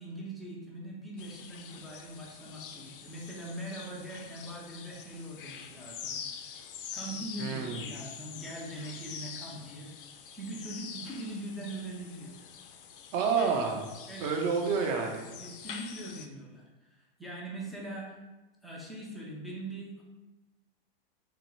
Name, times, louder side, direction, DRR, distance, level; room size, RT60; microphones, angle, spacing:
voice 1, 0.0-6.7 6.9-9.9 10.3-12.3 13.4-13.5 14.1-14.3 15.4-16.6 16.9-18.2 18.6-20.0, right 1 dB, ahead, -5 dB, 0.4 m, -42 dB
sound 1, 1.2-16.3, left 7 dB, 65° left, 0.5 m, -45 dB
voice 2, 7.4-7.9 13.1-13.9 14.2-15.3, right 5 dB, 35° right, 2 dB, 0.7 m, -29 dB
3.7 x 3.0 x 4.4 m, 1.1 s
supercardioid pair, 160°, 29 cm